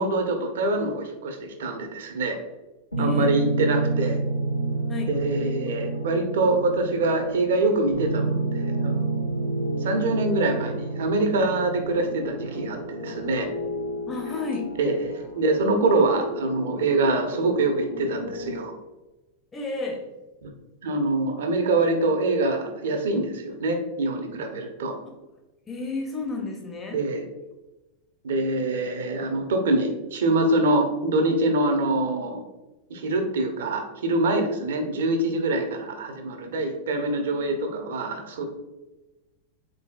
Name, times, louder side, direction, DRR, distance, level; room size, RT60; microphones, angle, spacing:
voice 1, 0.0-2.4 3.0-4.2 5.1-9.3 9.8-13.5 14.8-18.7 20.4-20.5 20.8-24.9 26.9-27.2 28.2-32.4 32.9-38.4, right 2 dB, 60° right, 5 dB, 0.6 m, -25 dB
sound 1, 2.9-18.6, right 2 dB, 80° left, 0.7 m, -30 dB
voice 2, 3.0-3.3 4.9-5.1 14.1-14.8 19.5-20.1 25.7-27.0, left 3 dB, 15° left, 2 dB, 0.6 m, -32 dB
3.9 x 3.7 x 2.3 m, 1.1 s
figure-of-eight pair, 90°, 0 cm